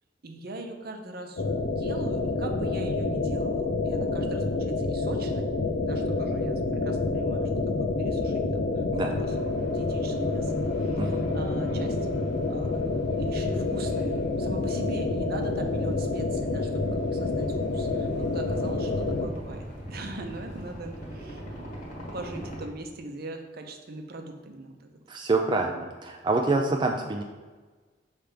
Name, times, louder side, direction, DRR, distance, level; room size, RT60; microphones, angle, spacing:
voice 1, 0.2-1.4 1.8-5.5 5.8-7.5 7.8-12.0 12.5-12.8 13.2-14.1 14.4-21.7 21.9-24.8 25.5-25.8 26.5-26.8, right 2 dB, 55° right, 4 dB, 0.7 m, -41 dB
sound 1, 1.4-19.3, left 3 dB, 75° left, 0.6 m, -28 dB
sound 2, 9.1-22.7, equal, 45° left, 1.3 m, -41 dB
voice 2, 25.1-27.2, right 3 dB, 25° right, 2 dB, 0.4 m, -26 dB
5.9 x 3.3 x 5.0 m, 1.4 s
head